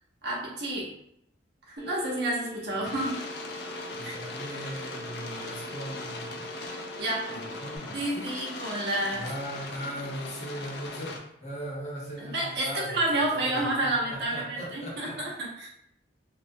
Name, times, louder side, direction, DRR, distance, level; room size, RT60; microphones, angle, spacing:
voice 1, 0.2-0.9 1.7-3.3 7.0-7.5 7.9-9.3 12.2-15.7, right 1 dB, 60° right, -3 dB, 0.7 m, -30 dB
Telephone, 1.8-7.8, right 1 dB, 5° left, 1.0 m, -44 dB
sound 1, 2.8-11.2, left 3 dB, 60° left, 0.3 m, -40 dB
voice 2, 3.9-6.6 7.3-8.3 9.1-13.0 13.4-13.9 14.3-15.2, equal, 35° left, -5 dB, 0.7 m, -39 dB
2.3 x 2.1 x 2.6 m, 0.74 s
head